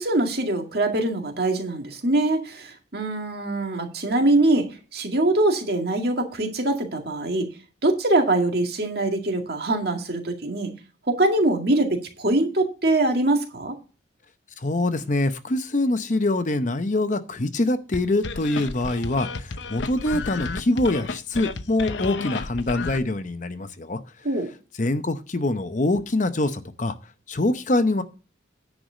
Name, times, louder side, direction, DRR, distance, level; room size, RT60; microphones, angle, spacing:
voice 1, 0.0-7.5 7.8-10.7 11.1-13.7 24.2-24.5, right 2 dB, 55° right, 3 dB, 2.0 m, -23 dB
voice 2, 14.6-24.0 24.8-26.9 27.3-28.0, left 2 dB, 40° left, 10 dB, 0.7 m, -24 dB
sound 1, 17.9-23.0, left 4 dB, 70° left, 0.8 m, -32 dB
10.5 x 4.7 x 6.2 m, 0.35 s
head